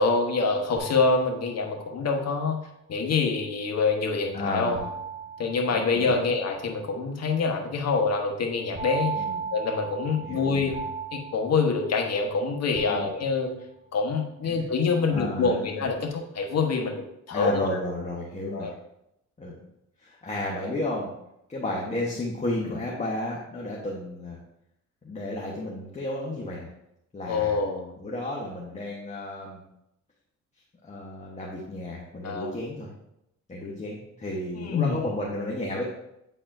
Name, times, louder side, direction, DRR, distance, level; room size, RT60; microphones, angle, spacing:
voice 1, 0.0-2.6 2.9-4.8 5.4-9.2 9.5-10.7 11.1-13.5 13.9-17.6 18.5-18.7 27.3-27.9 32.2-32.6 34.6-35.0, left 4 dB, 55° left, 1 dB, 1.3 m, -26 dB
sound 1, 0.8-2.0 4.8-6.4 8.8-12.3 12.8-13.7, right 5 dB, 25° right, 1.1 m, -37 dB
voice 2, 4.3-4.9 5.7-6.2 9.1-9.4 10.1-10.8 12.8-13.1 14.4-14.6 15.1-15.8 17.3-18.7 19.4-19.5 20.0-21.1 21.5-24.4 25.0-26.7 27.1-27.6 28.0-29.6 30.8-32.9 33.5-35.9, left 1 dB, 25° left, -4 dB, 1.3 m, -33 dB
8.7 x 4.1 x 2.7 m, 0.81 s
cardioid pair, 90°, 30 cm